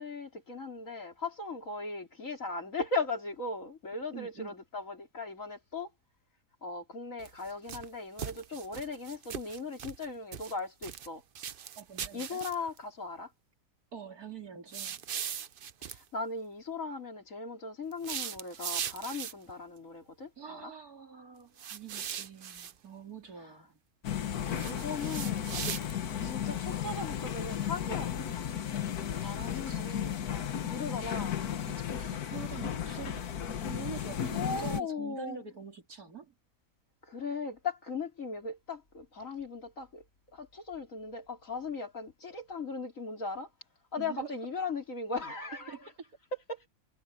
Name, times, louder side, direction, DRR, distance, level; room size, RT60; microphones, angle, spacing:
voice 1, 0.0-5.9 6.6-11.2 12.1-13.3 15.8-20.7 24.6-25.5 26.2-28.5 29.2-31.4 34.3-35.4 37.0-40.0 40.3-43.5 43.9-45.8 46.5-46.6, left 3 dB, 60° left, 3.7 m, -38 dB
voice 2, 4.1-4.6 11.8-12.4 13.9-15.0 20.4-23.8 24.4-24.9 29.2-30.0 31.6-36.3 44.0-44.4 45.7-45.9, right 7 dB, 75° right, 3.6 m, -46 dB
sound 1, 7.2-7.9 8.2-10.1 10.3-11.1 11.4-12.8 14.7-16.0 17.9-19.5 21.6-22.7 24.5-26.2, right 8 dB, 50° right, 0.7 m, -39 dB
sound 2, 24.0-34.8, left 9 dB, 85° left, 1.6 m, -34 dB
omnidirectional pair, 1.6 m